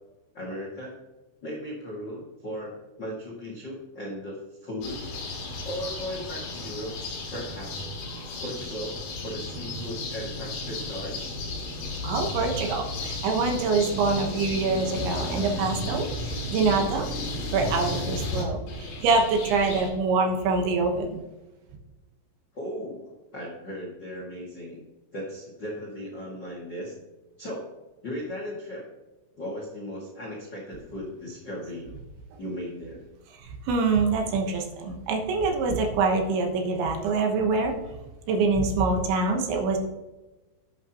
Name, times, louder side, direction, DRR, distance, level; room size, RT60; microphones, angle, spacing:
voice 1, 0.3-0.9 1.4-5.2 5.6-6.9 7.3-7.9 8.4-11.4 22.5-24.8 25.1-26.9 27.4-27.7 28.0-28.8 29.4-31.9 32.4-33.0, equal, 85° left, -3 dB, 0.9 m, -37 dB
sound 1, 4.8-19.9, left 2 dB, 65° left, 3.8 m, -34 dB
voice 2, 12.0-17.1 17.5-21.2 33.7-37.7 38.3-39.8, right 4 dB, 70° right, 2 dB, 3.3 m, -25 dB
12.0 x 8.7 x 3.0 m, 1.1 s
omnidirectional pair, 5.9 m